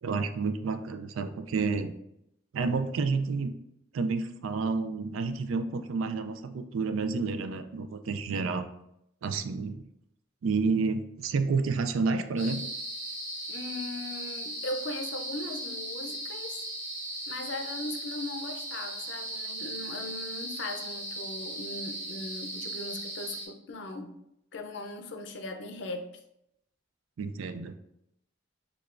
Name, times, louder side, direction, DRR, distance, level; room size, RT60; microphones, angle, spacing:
voice 1, 0.0-2.0 2.5-3.5 3.9-8.7 9.2-9.9 10.4-12.6 27.2-27.8, right 4 dB, 85° right, 9 dB, 0.4 m, -30 dB
sound 1, 12.4-23.5, right 1 dB, 15° right, 0.8 m, -37 dB
voice 2, 13.5-16.6 17.3-24.1 24.5-26.1, left 2 dB, 60° left, 5 dB, 0.5 m, -39 dB
6.5 x 2.3 x 2.4 m, 0.80 s
head